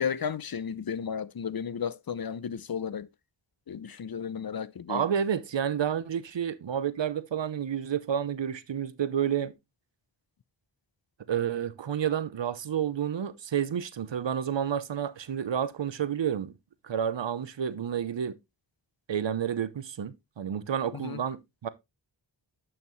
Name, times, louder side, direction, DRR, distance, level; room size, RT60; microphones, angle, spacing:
voice 1, 0.0-3.1 3.7-5.0 20.9-21.2, left 7 dB, 55° left, 0.6 m, -33 dB
voice 2, 4.9-9.5 11.3-16.5 16.8-18.4 19.1-21.7, right 8 dB, 75° right, 0.8 m, -30 dB
11.0 x 5.9 x 3.1 m
cardioid pair, 40°, 44 cm